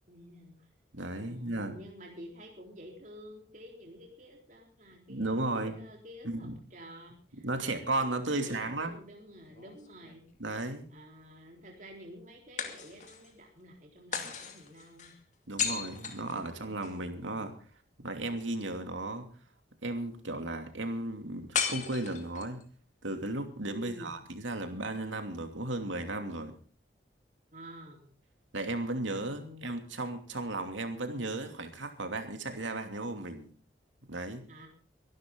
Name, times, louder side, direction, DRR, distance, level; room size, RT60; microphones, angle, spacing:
voice 1, 0.1-0.5 1.2-10.2 10.9-15.1 23.6-24.1 27.5-28.1 29.3-29.7 34.5-34.7, equal, 40° right, 0 dB, 4.0 m, -50 dB
voice 2, 0.9-1.7 5.1-5.8 6.2-6.5 7.4-9.0 10.4-10.9 15.5-17.6 18.0-19.3 19.8-22.6 23.0-26.5 28.5-33.5 34.1-34.4, right 2 dB, 90° right, 6 dB, 2.8 m, -35 dB
sound 1, 9.5-10.5 12.6-13.3 14.1-17.0 21.5-22.6, left 6 dB, 40° left, 2.4 m, -36 dB
24.0 x 12.0 x 3.8 m, 0.38 s
head